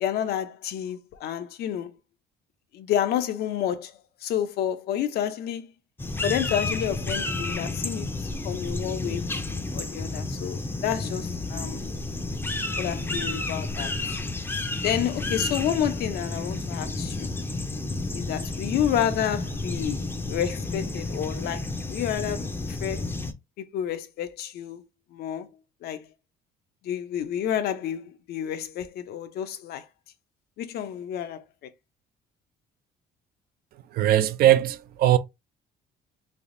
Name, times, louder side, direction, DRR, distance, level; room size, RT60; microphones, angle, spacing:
voice 1, 0.0-2.0 2.7-3.9 4.2-5.7 6.2-9.3 9.7-11.8 12.8-13.9 14.8-17.3 18.1-23.1 23.6-24.8 25.1-25.5 25.8-26.1 26.8-29.9 30.6-31.4, left 10 dB, 70° left, 0.6 m, -30 dB
sound 1, 6.0-23.3, left 2 dB, 15° left, 0.5 m, -31 dB
voice 2, 33.9-35.2, right 12 dB, 65° right, 0.4 m, -20 dB
3.4 x 2.8 x 2.5 m
cardioid pair, 110°, 17 cm